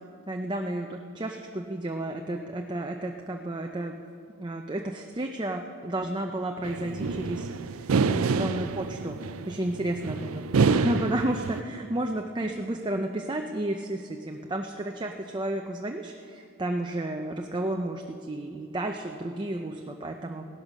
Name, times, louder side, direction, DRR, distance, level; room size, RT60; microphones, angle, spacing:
voice 1, 0.3-4.0 4.4-10.4 10.7-20.5, right 1 dB, 20° right, 3 dB, 0.6 m, -32 dB
sound 1, 6.6-11.6, right 4 dB, 75° right, 0.5 m, -27 dB
16.5 x 11.0 x 6.5 m, 2.4 s
head